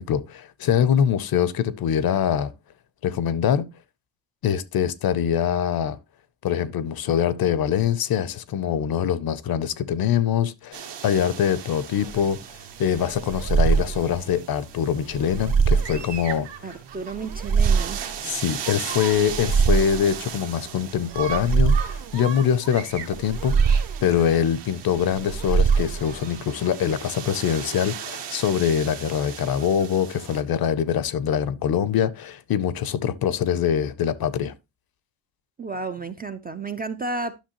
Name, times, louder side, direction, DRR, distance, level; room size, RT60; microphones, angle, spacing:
voice 1, 0.0-2.5 3.0-3.7 4.4-6.0 6.4-12.4 12.8-16.5 18.3-34.5, left 8 dB, 50° left, 0.6 m, -24 dB
sound 1, 10.7-30.4, right 8 dB, 65° right, 1.3 m, -37 dB
sound 2, 12.0-26.5, right 6 dB, 45° right, 1.1 m, -25 dB
voice 2, 16.6-18.2 35.6-37.4, right 3 dB, 20° right, 0.4 m, -32 dB
10.0 x 6.2 x 2.9 m
cardioid pair, 145°, 46 cm